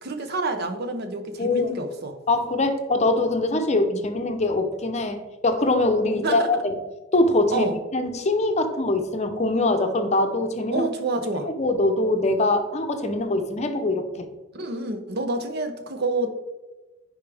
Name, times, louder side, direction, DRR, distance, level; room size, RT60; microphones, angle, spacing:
voice 1, 0.0-2.2 3.7-4.0 6.2-6.5 7.5-7.8 10.7-11.5 14.5-16.3, right 2 dB, 50° right, 7 dB, 0.8 m, -28 dB
voice 2, 1.4-1.7 2.3-6.6 7.1-10.9 11.4-14.3, left 2 dB, 35° left, 6 dB, 0.7 m, -23 dB
10.5 x 4.7 x 3.4 m, 1.1 s
head